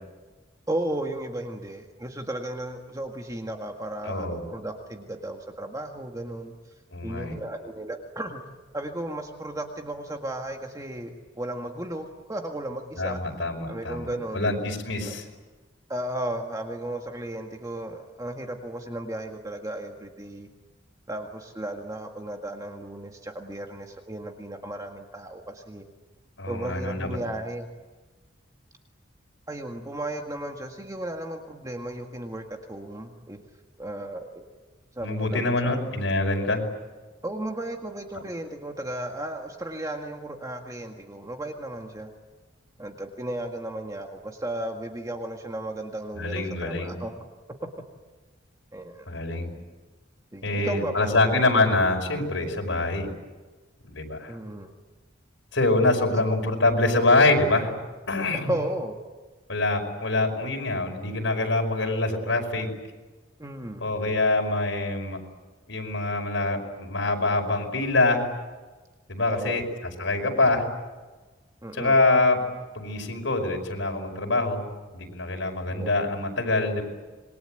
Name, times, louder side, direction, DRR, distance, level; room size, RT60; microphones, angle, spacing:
voice 1, 0.7-6.5 7.0-8.4 8.7-13.2 13.7-14.5 15.1-15.2 15.9-20.5 21.1-25.9 26.5-27.7 29.5-33.4 33.8-34.4 35.0-36.0 37.2-42.1 42.8-47.1 48.7-49.1 50.3-51.1 54.3-54.7 56.0-56.1 58.5-59.0 63.4-63.8 69.3-69.6 71.6-72.0 75.7-75.9, right 1 dB, 20° right, 3 dB, 1.8 m, -34 dB
voice 2, 4.1-4.4 6.9-7.4 13.0-15.2 26.4-27.2 35.0-36.6 46.1-47.0 49.1-49.6 50.4-53.1 53.8-54.3 55.5-57.7 58.1-58.5 59.5-62.7 63.8-65.2 65.7-68.3 69.1-69.6 70.0-70.6 71.7-72.4 72.7-74.6 74.9-76.8, left 2 dB, 80° left, 2 dB, 5.5 m, -25 dB
27.0 x 22.0 x 9.1 m, 1.3 s
head